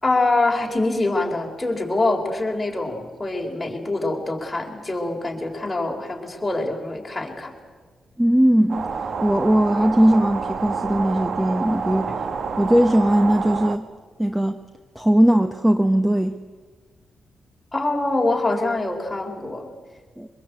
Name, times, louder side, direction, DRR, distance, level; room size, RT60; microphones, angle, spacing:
voice 1, 0.0-7.5 17.7-19.7, left 2 dB, 15° left, 4.0 m, -24 dB
voice 2, 8.2-12.3 12.6-13.9 14.2-14.6 14.9-16.4 20.2-20.3, equal, 10° right, 0.9 m, -19 dB
sound 1, 8.7-13.8, right 5 dB, 55° right, 1.2 m, -28 dB
24.0 x 21.5 x 8.1 m
cardioid pair, 115°, 0 cm